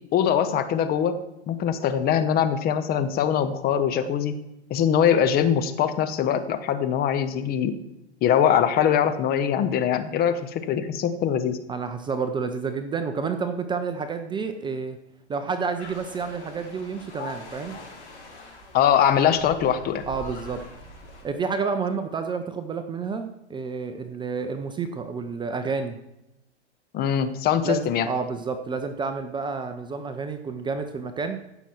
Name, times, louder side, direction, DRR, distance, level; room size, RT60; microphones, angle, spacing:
voice 1, 0.1-1.2 1.5-4.3 4.7-7.8 8.2-11.6 18.7-20.0 26.9-28.1, left 9 dB, 25° left, 10 dB, 0.9 m, -22 dB
voice 2, 11.7-15.0 15.3-17.8 20.1-20.6 21.2-26.0 27.6-31.4, right 5 dB, 15° right, 8 dB, 0.6 m, -29 dB
sound 1, 15.8-21.2, left 2 dB, 85° left, 4.7 m, -42 dB
15.5 x 6.2 x 4.4 m, 0.88 s
hypercardioid pair, 115°, 34 cm